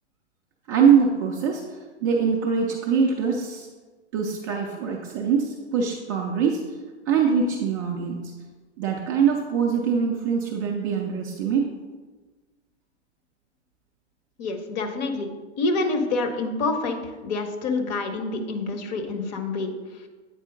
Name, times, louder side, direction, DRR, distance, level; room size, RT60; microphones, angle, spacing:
voice 1, 0.7-3.7 4.1-6.6 7.1-8.2 8.8-11.7, right 6 dB, 20° right, -1 dB, 0.3 m, -23 dB
voice 2, 14.4-15.3 15.6-20.1, left 3 dB, 40° left, 6 dB, 0.9 m, -27 dB
8.3 x 4.2 x 3.7 m, 1.3 s
figure-of-eight pair, 110°, 34 cm